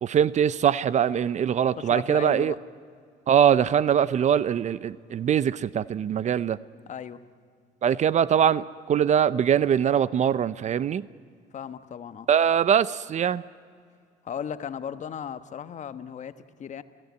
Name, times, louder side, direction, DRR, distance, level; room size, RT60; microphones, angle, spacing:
voice 1, 0.0-2.5 3.3-6.6 7.8-11.0 12.3-13.4, right 8 dB, 45° right, 18 dB, 0.6 m, -22 dB
voice 2, 1.8-2.6 6.9-7.2 11.5-12.3 14.2-16.8, left 8 dB, 45° left, 11 dB, 1.2 m, -36 dB
30.0 x 16.5 x 9.5 m, 2.2 s
cardioid pair, 110°, 17 cm